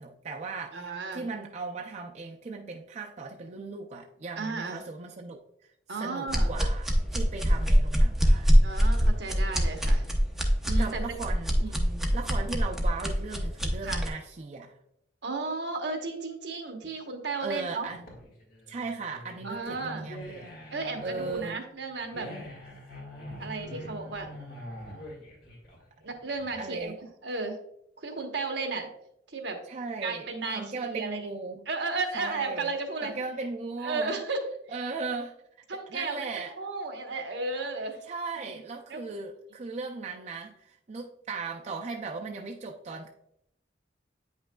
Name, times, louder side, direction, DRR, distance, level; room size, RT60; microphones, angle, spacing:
voice 1, 0.0-5.7 6.0-8.5 10.8-11.6 12.1-14.8 17.4-18.1 18.7-20.5 21.0-21.6 26.6-27.0 29.7-31.7 32.1-34.2 34.7-35.3 35.9-36.6 37.8-43.1, right 3 dB, 40° right, 1 dB, 0.4 m, -37 dB
voice 2, 0.7-1.3 4.4-4.8 5.9-6.6 8.6-10.0 10.6-11.2 11.6-12.1 13.8-14.0 15.2-17.9 19.4-20.1 20.7-22.3 23.4-24.3 26.0-26.9 27.2-27.6 28.0-28.9 29.3-29.6 30.0-31.2 31.7-33.1 33.8-34.4 35.7-36.3 36.6-38.0 38.4-38.6 38.9-39.0, right 3 dB, 70° right, 4 dB, 1.0 m, -34 dB
sound 1, 6.3-14.1, equal, ahead, 0.7 m, -24 dB
sound 2, 17.8-26.8, left 1 dB, 55° left, 1.9 m, -44 dB
8.6 x 5.6 x 2.2 m, 0.76 s
head